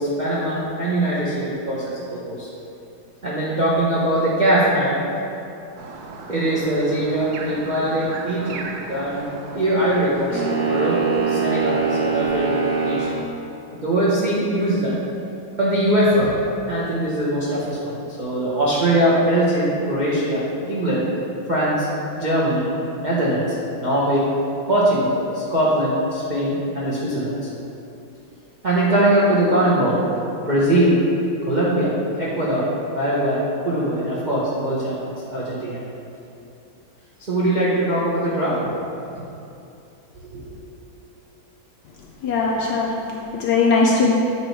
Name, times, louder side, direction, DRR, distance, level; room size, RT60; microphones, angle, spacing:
voice 1, 0.0-2.5 3.2-5.1 6.3-8.6 8.8-13.2 13.7-15.0 15.6-16.4 16.7-20.4 20.7-21.1 21.5-21.9 22.2-22.7 23.0-24.3 24.7-27.5 28.6-30.0 30.4-31.0 31.4-32.7 32.9-35.0 35.3-35.8 37.2-38.6 40.1-40.6, right 1 dB, 55° right, -8 dB, 0.4 m, -21 dB
sound 1, 5.8-13.3, right 3 dB, 75° right, 1.2 m, -37 dB
sound 2, 10.3-13.1, right 5 dB, 90° right, 2.2 m, -23 dB
voice 2, 42.2-44.1, left 4 dB, 75° left, -2 dB, 1.0 m, -20 dB
8.3 x 3.1 x 4.5 m, 2.7 s
omnidirectional pair, 2.2 m